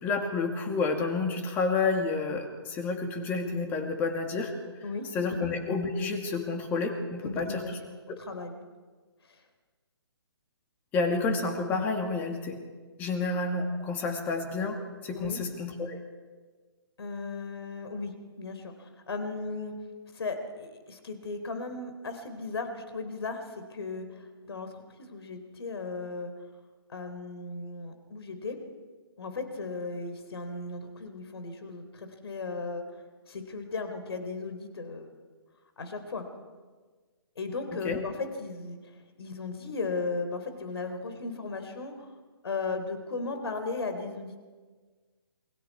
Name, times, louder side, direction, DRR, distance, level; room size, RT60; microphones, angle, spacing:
voice 1, 0.0-4.5 5.1-7.6 10.9-12.6 13.0-16.0 37.8-38.0, left 4 dB, 15° left, 4 dB, 2.2 m, -30 dB
voice 2, 4.8-5.4 7.2-7.7 8.2-8.6 9.3-9.4 15.1-15.4 17.0-19.7 20.1-26.3 26.9-28.6 29.2-32.8 33.3-35.1 35.8-36.2 37.4-42.1 42.4-44.4, left 3 dB, 70° left, 7 dB, 3.8 m, -36 dB
28.0 x 23.5 x 4.8 m, 1.4 s
hypercardioid pair, 160°, 14 cm